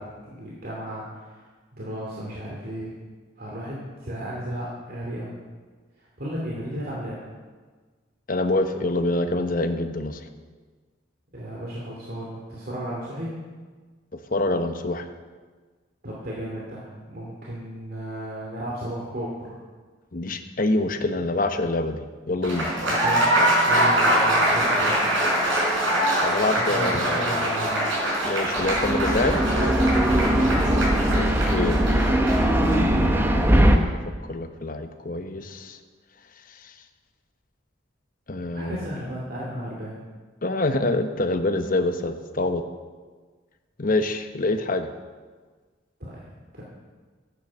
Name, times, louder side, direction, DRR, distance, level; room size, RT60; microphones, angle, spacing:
voice 1, 0.0-1.4 1.7-2.9 3.4-5.3 6.0-7.3 11.3-13.4 16.0-19.6 23.0-25.1 26.7-27.9 30.3-30.7 38.5-40.0 46.0-46.3 46.5-46.6, equal, 50° right, -5 dB, 2.5 m, -34 dB
voice 2, 8.3-10.2 14.1-15.1 20.1-22.7 26.2-27.5 28.2-29.5 31.1-31.8 32.6-33.8 34.3-35.8 36.6-36.7 38.3-38.8 40.4-42.6 43.8-44.9, left 2 dB, 45° left, 7 dB, 1.0 m, -26 dB
Applause, 22.4-32.8, right 1 dB, 85° right, 5.0 m, -23 dB
sound 1, 28.6-33.8, right 1 dB, 10° right, 0.9 m, -20 dB
14.0 x 9.4 x 6.2 m, 1.4 s
head